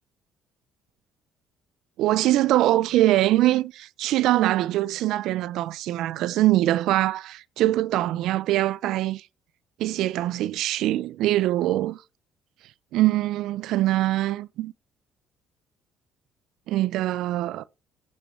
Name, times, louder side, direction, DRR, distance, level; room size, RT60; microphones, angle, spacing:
voice 1, 2.0-9.2 9.8-12.0 12.9-14.7 16.7-17.6, right 15 dB, 75° right, 0.7 m, -23 dB
8.6 x 6.1 x 5.5 m
supercardioid pair, 85°, 0 cm